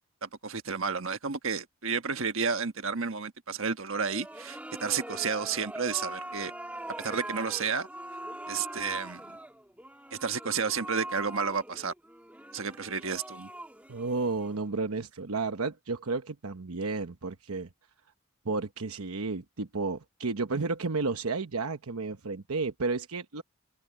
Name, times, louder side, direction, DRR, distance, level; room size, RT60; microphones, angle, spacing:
voice 1, 0.2-6.5 7.0-7.9 8.5-9.2 10.1-11.9 12.5-13.5, right 5 dB, 65° right, 1.4 m, -31 dB
sound 1, 3.9-14.9, right 1 dB, 5° right, 1.6 m, -42 dB
voice 2, 13.9-17.7 18.4-23.4, right 3 dB, 85° right, 1.0 m, -32 dB
open air
head